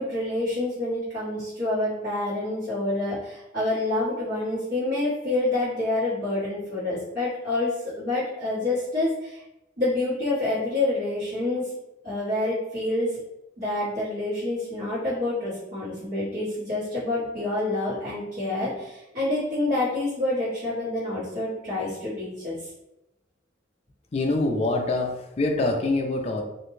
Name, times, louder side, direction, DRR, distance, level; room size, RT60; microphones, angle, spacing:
voice 1, 0.0-9.4 9.8-11.7 12.0-13.1 13.6-22.6, left 2 dB, 50° right, -15 dB, 1.2 m, -27 dB
voice 2, 24.1-26.4, left 2 dB, 35° left, 3 dB, 0.3 m, -25 dB
2.5 x 2.2 x 3.0 m, 0.90 s
head